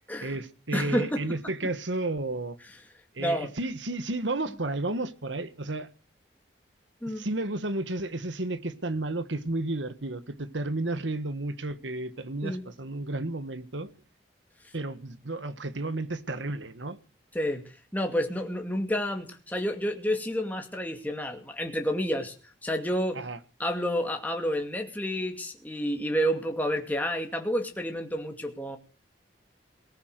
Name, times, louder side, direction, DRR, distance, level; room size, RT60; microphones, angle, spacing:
voice 1, 0.2-2.6 3.1-5.9 7.2-13.9 14.7-17.0 23.1-23.4, right 2 dB, 80° right, 1.6 m, -32 dB
voice 2, 0.7-1.2 3.2-3.5 7.0-7.2 12.4-12.6 17.3-17.6 17.9-22.3 22.6-23.2 23.6-28.8, equal, 10° left, 2.3 m, -29 dB
19.5 x 9.9 x 6.7 m
head